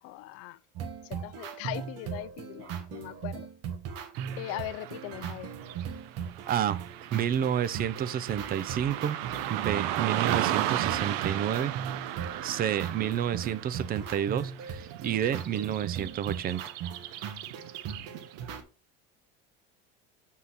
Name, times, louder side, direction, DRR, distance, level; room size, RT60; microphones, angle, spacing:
voice 1, 0.0-0.6 1.0-3.5 4.3-5.5, left 15 dB, 55° left, 0.5 m, -40 dB
sound 1, 0.8-18.6, right 7 dB, 60° right, 1.3 m, -39 dB
Car passing by / Traffic noise roadway noise, 4.1-18.4, right 13 dB, 85° right, 0.6 m, -36 dB
voice 2, 6.5-6.8 7.1-9.2 9.5-11.7 12.4-16.6, right 9 dB, 30° right, 0.5 m, -30 dB
6.4 x 3.7 x 4.1 m
supercardioid pair, 120°, 29 cm